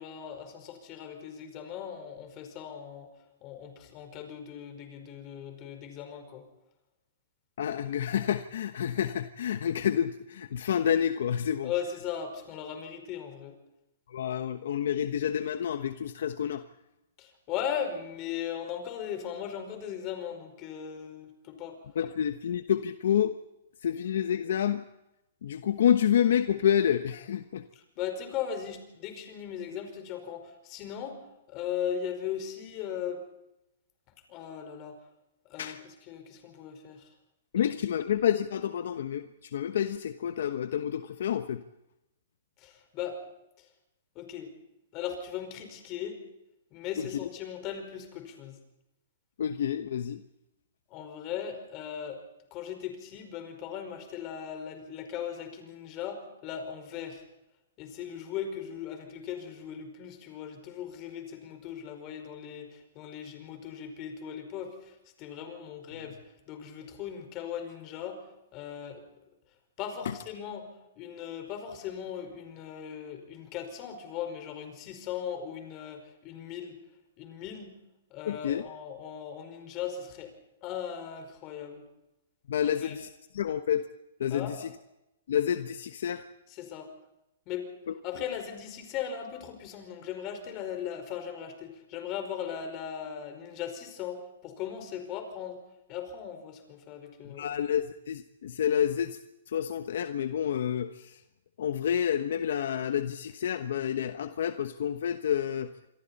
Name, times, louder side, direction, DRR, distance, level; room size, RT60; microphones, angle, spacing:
voice 1, 0.0-3.1 3.4-6.4 11.6-13.6 17.2-21.8 27.7-31.2 31.5-33.2 34.3-35.0 35.4-37.1 37.7-37.8 42.6-43.2 43.6-43.7 44.1-44.5 44.9-46.2 46.7-48.6 50.9-52.2 52.5-57.2 57.8-66.2 66.5-69.0 69.8-76.8 77.2-77.8 78.1-80.3 80.6-81.8 82.6-82.9 84.3-84.6 86.5-86.9 87.5-87.7 88.0-95.6 95.9-97.5, left 8 dB, 30° left, 6 dB, 4.9 m, -38 dB
voice 2, 7.6-11.7 14.1-16.6 21.9-23.3 23.8-24.8 25.4-27.6 35.6-35.8 37.5-41.6 47.0-47.1 49.4-50.2 70.0-70.1 78.3-78.6 82.5-83.1 83.3-83.9 84.2-84.7 85.3-86.2 97.3-99.2 99.5-101.2 101.6-105.9, left 9 dB, 70° left, 9 dB, 1.1 m, -29 dB
27.0 x 23.0 x 4.3 m, 0.89 s
hypercardioid pair, 150°, 0 cm